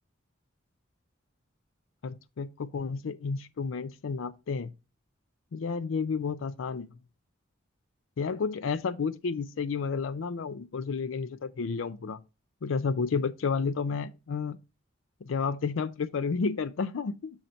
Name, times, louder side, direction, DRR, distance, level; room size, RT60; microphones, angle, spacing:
voice 1, 2.0-4.7 5.5-6.9 8.2-12.2 12.6-14.6 15.2-17.3, left 5 dB, 85° left, 0.4 m, -31 dB
6.4 x 4.2 x 4.3 m
head